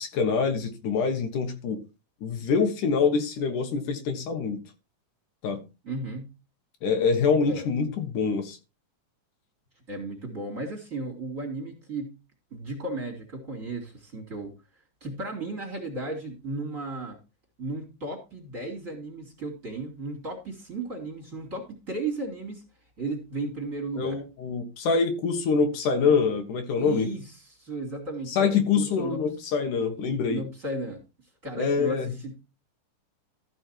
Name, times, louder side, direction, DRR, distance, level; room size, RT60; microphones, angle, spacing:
voice 1, 0.0-1.8 2.2-4.6 5.4-5.6 6.8-8.6 24.0-27.1 28.3-30.4 31.6-32.1, left 5 dB, 75° left, 5 dB, 2.9 m, -25 dB
voice 2, 5.8-6.3 7.5-7.6 9.9-12.2 12.5-14.5 15.0-17.2 17.6-22.6 23.0-24.2 26.8-29.2 30.0-31.0 31.4-32.4, right 2 dB, 25° right, 3 dB, 3.6 m, -35 dB
14.0 x 6.3 x 4.5 m, 0.29 s
omnidirectional pair, 3.7 m